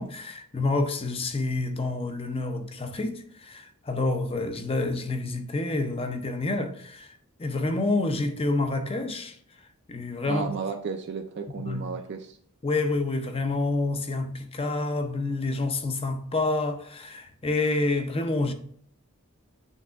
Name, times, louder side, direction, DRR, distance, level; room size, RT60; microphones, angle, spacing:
voice 1, 0.0-9.4 9.9-10.5 11.6-11.9 12.6-18.5, left 2 dB, 25° left, 0.6 m, -28 dB
voice 2, 10.3-12.4, right 5 dB, 50° right, 0.4 m, -33 dB
9.2 x 3.6 x 3.4 m
head